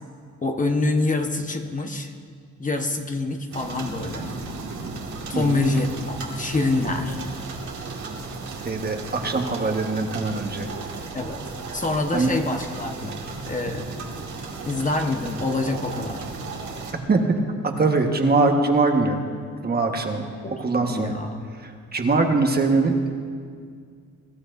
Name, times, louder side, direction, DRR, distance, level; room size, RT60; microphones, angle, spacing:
voice 1, 0.4-2.1 2.6-4.3 5.3-7.2 11.1-11.4 11.7-13.1 13.5-13.9 14.6-16.2 20.4-21.5, left 2 dB, 25° left, 4 dB, 1.1 m, -26 dB
sound 1, 3.5-16.9, right 4 dB, 70° right, 2.2 m, -35 dB
voice 2, 5.3-5.6 8.6-10.7 12.1-12.3 17.1-17.2 17.8-19.2 19.6-20.3 20.6-21.2 21.5-22.9, right 3 dB, 30° right, 3 dB, 1.4 m, -22 dB
22.0 x 12.5 x 2.7 m, 2.1 s
cardioid pair, 90°, 30 cm